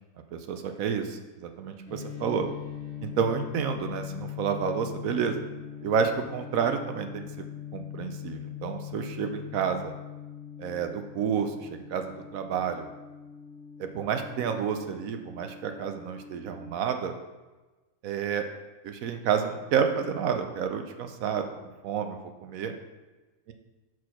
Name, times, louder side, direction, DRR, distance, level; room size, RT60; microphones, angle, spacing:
voice 1, 0.3-2.5 3.0-5.4 5.8-7.2 7.7-9.9 10.6-12.0 12.3-12.9 13.8-17.2 18.0-18.4 18.8-21.4 21.8-22.7, right 7 dB, 75° right, 6 dB, 1.1 m, -30 dB
sound 1, 1.9-16.6, left 10 dB, 50° left, 1.6 m, -41 dB
6.3 x 4.6 x 5.8 m, 1.2 s
omnidirectional pair, 1.5 m